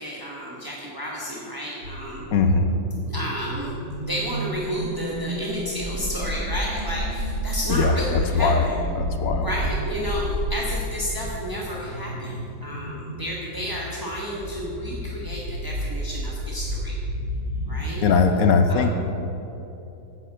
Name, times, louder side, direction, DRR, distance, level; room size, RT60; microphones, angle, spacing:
voice 1, 0.0-2.3 3.1-3.7 4.0-8.8 9.4-17.0 17.7-18.1 18.7-18.8, equal, 15° right, -5 dB, 0.7 m, -31 dB
sound 1, 1.8-18.4, right 1 dB, 55° right, 2.1 m, -31 dB
voice 2, 2.3-2.7 7.7-7.9 8.3-8.6 9.0-9.5 18.0-19.0, left 4 dB, 65° left, 6 dB, 0.9 m, -20 dB
9.3 x 6.6 x 7.6 m, 3.0 s
omnidirectional pair, 2.1 m